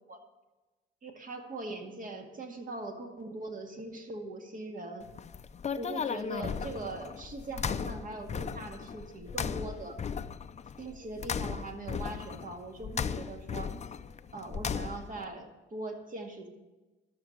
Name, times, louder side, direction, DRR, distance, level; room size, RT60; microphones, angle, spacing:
voice 1, 1.0-5.1 5.8-10.1 10.8-13.7 14.3-16.5, right 2 dB, 45° right, 3 dB, 2.1 m, -41 dB
sound 1, 5.0-15.2, left 7 dB, 35° left, 0.5 m, -37 dB
12.5 x 7.1 x 7.2 m, 1.1 s
cardioid pair, 90°, 20 cm